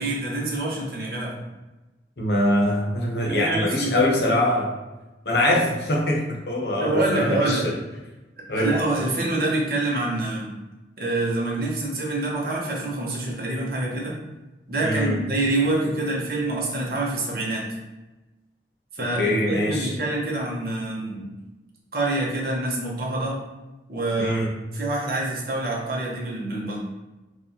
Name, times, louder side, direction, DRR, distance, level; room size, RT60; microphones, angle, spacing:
voice 1, 0.0-1.4 3.3-4.1 6.8-7.7 8.6-10.5 11.0-14.2 14.7-17.7 18.9-21.3 21.9-23.4 23.9-24.4 24.7-26.8, right 2 dB, 55° right, -3 dB, 1.0 m, -26 dB
voice 2, 2.2-4.7 5.3-7.7 8.5-8.7 14.8-15.2 19.2-19.9 24.2-24.5, left 1 dB, 70° left, -1 dB, 0.8 m, -23 dB
4.7 x 2.4 x 2.8 m, 1.1 s
head